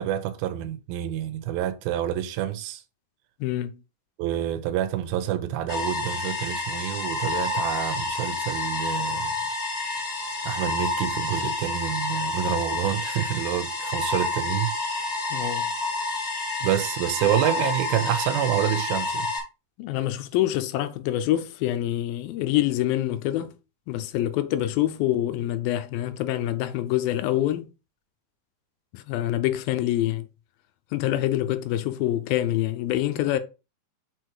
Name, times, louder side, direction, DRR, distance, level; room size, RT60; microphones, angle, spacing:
voice 1, 0.0-2.8 4.2-9.3 10.5-14.7 16.6-19.3, right 12 dB, 85° right, 2.6 m, -28 dB
voice 2, 3.4-3.8 15.3-15.7 19.8-23.5 23.9-27.7 28.9-30.3 30.9-33.4, left 13 dB, 85° left, 2.5 m, -26 dB
sound 1, 5.7-19.4, left 3 dB, 35° left, 0.7 m, -29 dB
6.3 x 4.6 x 4.7 m
omnidirectional pair, 4.2 m